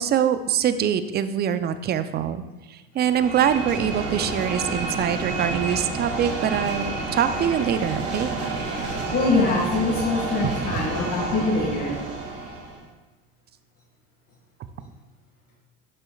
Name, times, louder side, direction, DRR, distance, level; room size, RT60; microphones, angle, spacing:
voice 1, 0.0-2.4 2.7-8.3 10.7-10.8, right 9 dB, 30° right, 11 dB, 0.5 m, -24 dB
sound 1, 3.0-12.8, right 3 dB, 50° right, 2.1 m, -30 dB
voice 2, 9.1-12.0, left 3 dB, 50° left, -5 dB, 1.9 m, -23 dB
11.0 x 6.7 x 2.3 m, 1.2 s
supercardioid pair, 110°, 32 cm